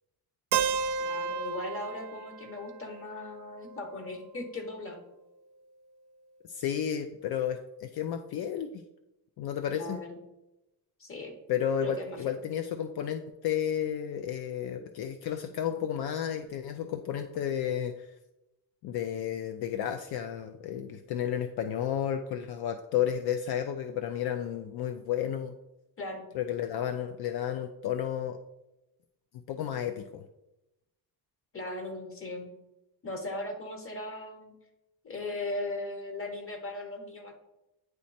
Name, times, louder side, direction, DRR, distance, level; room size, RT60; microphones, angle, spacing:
Keyboard (musical), 0.5-4.4, right 6 dB, 70° right, 0.5 m, -33 dB
voice 1, 1.0-5.0 9.7-10.2 11.0-11.3 11.8-12.3 26.0-26.3 31.5-32.5 33.0-34.5 35.0-37.4, left 2 dB, 35° left, 4 dB, 1.3 m, -38 dB
voice 2, 6.5-8.8 9.4-10.0 11.5-18.1 18.8-25.6 26.3-28.4 29.5-30.2, left 9 dB, 70° left, 7 dB, 0.5 m, -32 dB
9.3 x 3.1 x 4.2 m, 0.93 s
cardioid pair, 125°, 40 cm